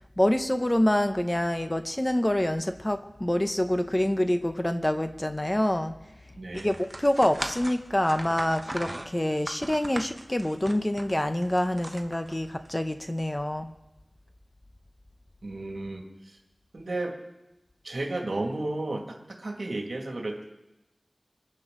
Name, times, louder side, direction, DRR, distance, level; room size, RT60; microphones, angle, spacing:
voice 1, 0.2-5.9 6.5-13.7, left 1 dB, 20° left, 8 dB, 0.8 m, -26 dB
voice 2, 6.3-6.7 15.4-16.4 16.7-17.2 17.8-20.4, right 2 dB, 65° right, 1 dB, 2.2 m, -33 dB
sound 1, 6.5-12.7, right 1 dB, 25° right, 1.1 m, -39 dB
25.5 x 9.8 x 3.9 m, 0.97 s
wide cardioid pair, 70°, 0 cm